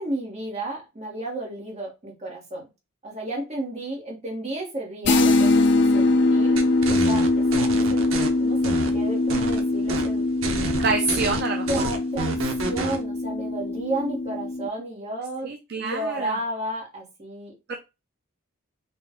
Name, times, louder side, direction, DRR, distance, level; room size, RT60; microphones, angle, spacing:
voice 1, 0.0-2.7 3.0-6.6 6.9-8.1 8.4-8.6 8.9-10.2 11.7-17.5, right 1 dB, 30° right, -1 dB, 1.4 m, -32 dB
sound 1, 5.1-14.7, left 2 dB, 55° left, 0.5 m, -22 dB
sound 2, 6.6-8.3 8.6-9.6 9.9-10.1 10.4-13.0, right 3 dB, 80° right, 0.8 m, -29 dB
voice 2, 10.8-11.9 15.4-16.4 17.7-17.8, right 4 dB, 50° right, 3 dB, 0.5 m, -27 dB
3.9 x 2.6 x 3.6 m, 0.26 s
head